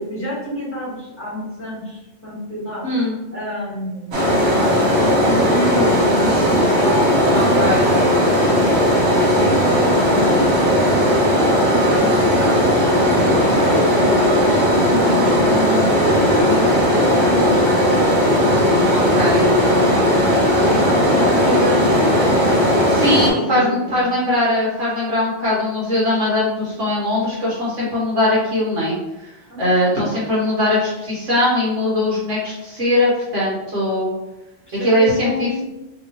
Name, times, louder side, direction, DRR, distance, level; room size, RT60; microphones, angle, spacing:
voice 1, 0.0-2.8 3.3-4.3 4.9-24.1 29.5-29.7 34.7-35.6, equal, 10° left, -7 dB, 1.4 m, -29 dB
voice 2, 2.8-3.1 7.3-7.9 18.9-19.5 22.9-29.3 29.6-34.1 34.8-35.6, left 1 dB, 90° right, -7 dB, 1.6 m, -20 dB
sound 1, 4.1-23.3, equal, 60° right, 1.2 m, -16 dB
3.2 x 2.8 x 3.0 m, 1.0 s
omnidirectional pair, 1.2 m